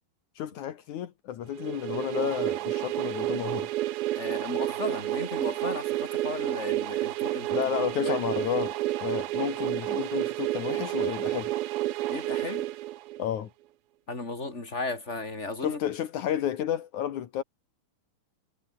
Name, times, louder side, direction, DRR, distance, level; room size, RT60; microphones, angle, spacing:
voice 1, 0.4-3.7 7.5-11.5 13.2-13.5 15.6-17.4, left 10 dB, 75° left, 1.7 m, -31 dB
sound 1, 1.6-13.4, right 15 dB, 85° right, 2.1 m, -30 dB
voice 2, 4.1-7.5 8.0-8.2 12.1-12.7 14.1-15.8, left 3 dB, 15° left, 4.7 m, -35 dB
omnidirectional pair, 5.9 m